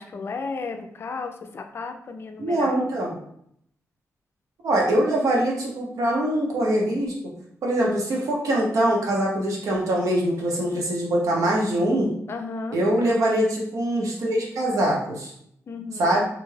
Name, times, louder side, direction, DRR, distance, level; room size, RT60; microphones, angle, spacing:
voice 1, 0.0-2.7 12.3-12.8 15.7-16.2, left 4 dB, 45° left, 5 dB, 0.3 m, -34 dB
voice 2, 2.4-3.2 4.6-7.1 7.6-12.1 12.7-15.3 16.0-16.2, right 1 dB, 85° right, -2 dB, 0.8 m, -23 dB
2.5 x 2.2 x 3.2 m, 0.70 s
wide cardioid pair, 110°, 6 cm